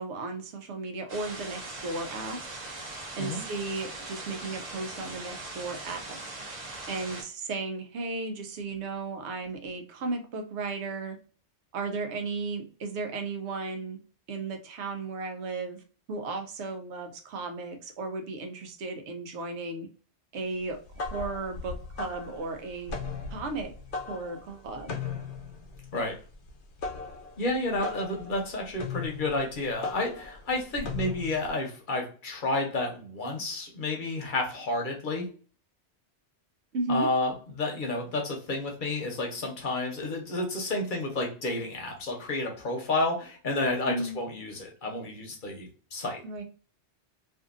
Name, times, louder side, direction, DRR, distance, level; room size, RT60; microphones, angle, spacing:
voice 1, 0.0-2.4 3.2-6.2 6.9-11.2 11.7-14.0 14.3-19.9 20.3-23.0 23.3-23.7 24.1-25.0 36.7-37.1 43.9-44.2 46.2-46.4, right 3 dB, 85° right, 5 dB, 0.9 m, -35 dB
sound 1, 1.1-7.2, right 2 dB, 45° right, 0.7 m, -40 dB
sound 2, 20.7-31.5, left 5 dB, 85° left, 0.9 m, -38 dB
voice 2, 27.4-35.2 36.9-46.2, left 2 dB, 55° left, 1 dB, 0.8 m, -31 dB
2.6 x 2.5 x 2.4 m, 0.39 s
omnidirectional pair, 1.1 m